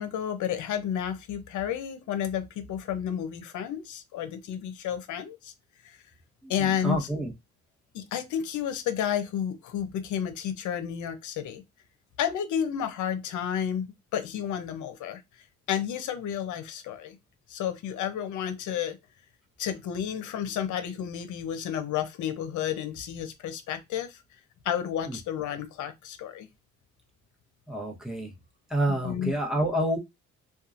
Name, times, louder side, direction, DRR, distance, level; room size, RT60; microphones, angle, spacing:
voice 1, 0.0-5.5 5.8-6.0 6.5-7.1 7.9-11.6 12.2-13.9 14.1-15.2 15.7-17.2 17.5-19.0 19.6-24.2 24.6-26.5 28.9-29.3, left 9 dB, 75° left, 0.6 m, -31 dB
voice 2, 6.4-7.3 25.1-25.2 27.7-28.3 28.7-30.0, right 1 dB, ahead, 1.0 m, -28 dB
2.7 x 2.2 x 2.5 m
cardioid pair, 90°, 30 cm